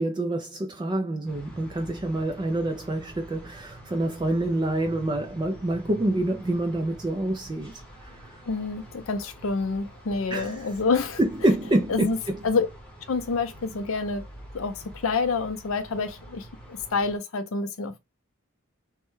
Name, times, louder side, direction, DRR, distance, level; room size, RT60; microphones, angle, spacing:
voice 1, 0.0-7.8 10.3-10.7 11.2-12.4, right 1 dB, 20° right, 0.3 m, -27 dB
sound 1, 1.3-17.2, right 1 dB, 5° left, 0.9 m, -46 dB
voice 2, 8.5-11.2 11.9-12.2 12.4-12.7 13.1-14.2 14.5-18.0, left 4 dB, 65° left, 0.5 m, -27 dB
3.1 x 2.2 x 3.1 m
head